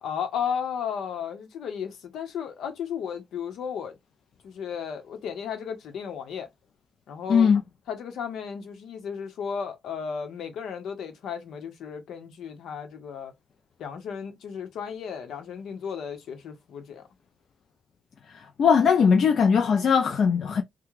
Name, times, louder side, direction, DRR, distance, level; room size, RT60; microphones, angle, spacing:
voice 1, 0.0-3.9 4.4-6.5 7.1-7.5 7.9-13.3 13.8-17.1, left 7 dB, 75° left, 1.0 m, -34 dB
voice 2, 7.3-7.6 18.3-20.6, left 6 dB, 60° left, 0.6 m, -20 dB
3.4 x 2.3 x 3.2 m
cardioid pair, 80°, 0 cm